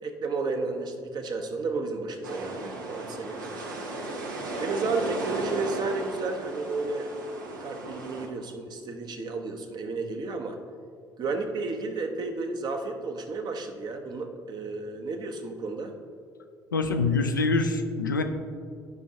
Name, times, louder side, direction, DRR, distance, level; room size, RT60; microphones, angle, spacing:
voice 1, 0.0-3.6 4.2-10.6 11.2-15.9, right 3 dB, 45° right, 5 dB, 0.8 m, -32 dB
sound 1, 2.2-8.3, right 2 dB, 75° right, 0.7 m, -35 dB
voice 2, 16.7-18.2, left 3 dB, 85° left, 6 dB, 0.4 m, -25 dB
12.5 x 5.3 x 2.8 m, 2.2 s
figure-of-eight pair, 50°, 10 cm